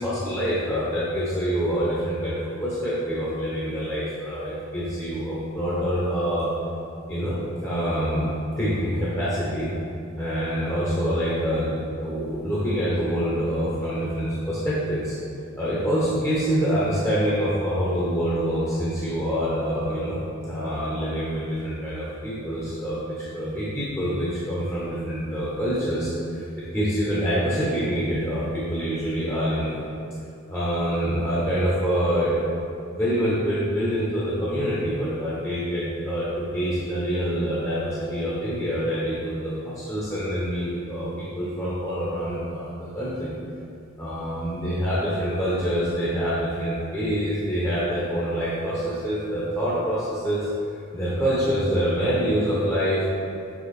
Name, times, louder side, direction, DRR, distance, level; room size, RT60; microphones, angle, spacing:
voice 1, 0.0-6.5 7.1-9.7 10.2-15.2 15.6-29.9 30.5-32.4 32.9-43.3 44.0-53.0, equal, 10° left, -9 dB, 1.0 m, -26 dB
7.1 x 3.8 x 4.3 m, 2.4 s
head